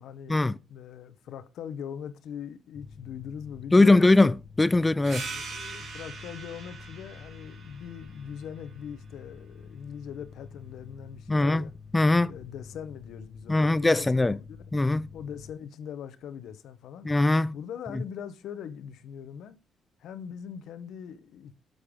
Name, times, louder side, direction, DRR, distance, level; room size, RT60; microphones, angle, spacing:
voice 1, 0.0-0.4 0.7-4.1 5.2-11.7 12.2-14.6 15.1-17.1 17.5-19.6 20.0-21.5, left 8 dB, 80° left, 0.9 m, -41 dB
Mechanical fan, 2.7-15.5, left 5 dB, 40° left, 1.1 m, -48 dB
voice 2, 3.7-5.3 11.3-11.6 11.9-12.3 13.5-14.4 14.7-15.1 17.0-17.5 17.9-18.0, left 2 dB, 15° left, 0.4 m, -21 dB
sound 1, 5.0-10.2, right 4 dB, 60° right, 4.7 m, -43 dB
11.5 x 6.6 x 3.7 m
cardioid pair, 90°, 0 cm